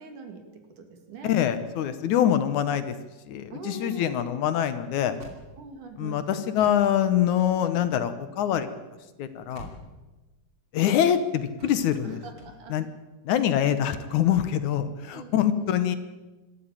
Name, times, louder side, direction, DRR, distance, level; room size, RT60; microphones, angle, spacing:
voice 1, 0.0-1.3 3.5-4.4 5.6-6.3 12.0-12.8 15.1-15.8, right 5 dB, 70° right, 5 dB, 4.0 m, -42 dB
voice 2, 1.2-2.9 3.3-5.2 6.0-8.7 9.2-9.7 10.7-12.2 12.7-12.9 13.3-16.0, left 10 dB, 70° left, 12 dB, 2.3 m, -24 dB
sound 1, 5.1-6.1 6.6-10.5 11.6-13.2 13.8-14.7, right 1 dB, 40° right, 3.3 m, -49 dB
24.0 x 13.0 x 9.0 m, 1.2 s
omnidirectional pair, 3.8 m